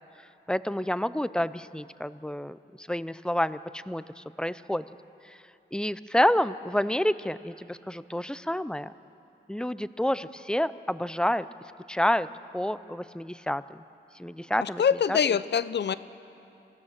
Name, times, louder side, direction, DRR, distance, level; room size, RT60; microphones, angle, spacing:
voice 1, 0.5-4.9 5.2-5.4 5.7-8.9 9.5-11.5 11.9-12.3 12.5-13.8 14.1-14.8 15.1-15.2, left 1 dB, 5° left, 15 dB, 0.5 m, -29 dB
voice 2, 14.6-15.9, left 7 dB, 65° left, 15 dB, 0.6 m, -24 dB
27.0 x 16.0 x 6.5 m, 2.8 s
cardioid pair, 75°, 19 cm